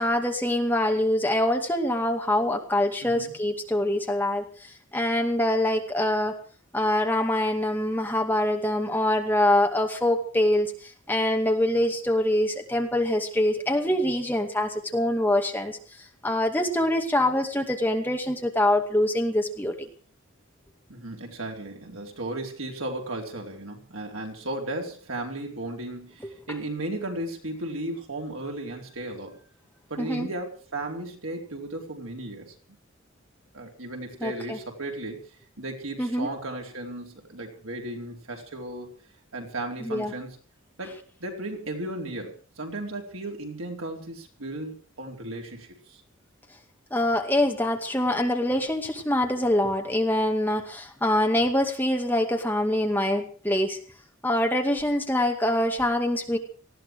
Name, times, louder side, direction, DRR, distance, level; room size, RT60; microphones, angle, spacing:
voice 1, 0.0-6.3 6.7-15.8 16.2-19.7 30.0-30.3 34.2-34.6 36.0-36.3 39.8-40.1 46.9-53.8 54.2-56.4, left 1 dB, 10° left, 3 dB, 2.2 m, -24 dB
voice 2, 3.0-3.3 20.9-29.4 29.9-32.5 33.5-35.2 35.6-39.0 39.3-40.4 40.8-46.0, right 1 dB, 80° right, 1 dB, 4.5 m, -35 dB
19.5 x 15.0 x 4.8 m, 0.41 s
head